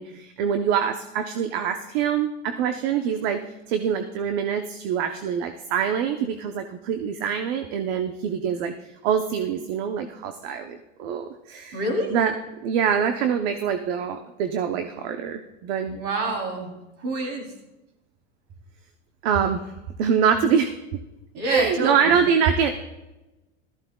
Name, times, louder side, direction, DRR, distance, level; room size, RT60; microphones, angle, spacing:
voice 1, 0.0-3.4 3.7-8.7 9.0-11.8 12.1-12.3 12.6-16.0 19.2-19.7 20.0-21.0 21.5-22.7, right 7 dB, 55° right, 7 dB, 0.9 m, -24 dB
voice 2, 11.7-12.1 15.9-16.7 17.0-17.5 21.3-22.2, right 1 dB, 40° right, 2 dB, 3.5 m, -27 dB
16.0 x 14.0 x 2.4 m, 1.0 s
supercardioid pair, 140°, 36 cm